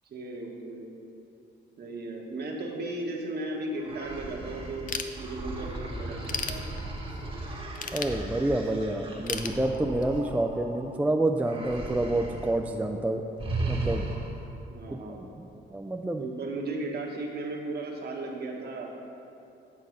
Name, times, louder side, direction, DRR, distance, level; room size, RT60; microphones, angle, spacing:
voice 1, 0.1-0.9 1.8-6.6 14.7-15.2 16.2-19.1, right 2 dB, 55° right, 0 dB, 1.3 m, -36 dB
sound 1, 3.8-10.9 11.3-12.6 12.9-13.0 13.4-14.5, right 2 dB, 25° right, 1.2 m, -36 dB
Ratchet pawl / Tools, 4.9-5.7 6.1-7.2 7.8-8.7 9.3-10.2, left 6 dB, 45° left, 0.5 m, -35 dB
voice 2, 7.9-13.2 13.7-14.1 14.9-15.0 15.4-16.3, right 1 dB, 5° right, 5 dB, 0.3 m, -28 dB
8.6 x 4.0 x 6.3 m, 2.8 s
cardioid pair, 90°, 20 cm